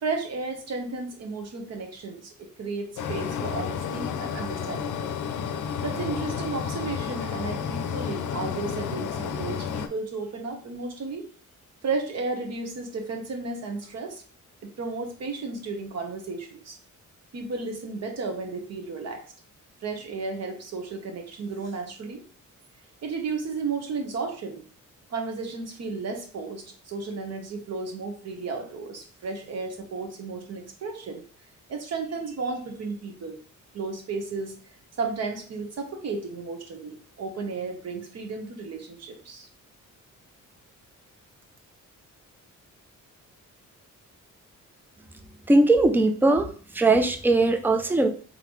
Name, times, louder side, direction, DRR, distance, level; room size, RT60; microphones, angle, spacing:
voice 1, 0.0-5.0 5.8-11.3 11.8-14.2 14.6-16.8 17.3-19.2 19.8-22.2 23.0-24.6 25.1-31.2 31.7-33.4 33.7-34.5 35.0-39.5, right 4 dB, 55° right, 4 dB, 1.0 m, -33 dB
sound 1, 3.0-9.9, left 7 dB, 70° left, 0.5 m, -31 dB
voice 2, 45.5-48.1, right 2 dB, 5° right, 6 dB, 0.3 m, -20 dB
3.9 x 3.7 x 3.1 m, 0.42 s
wide cardioid pair, 170°, 31 cm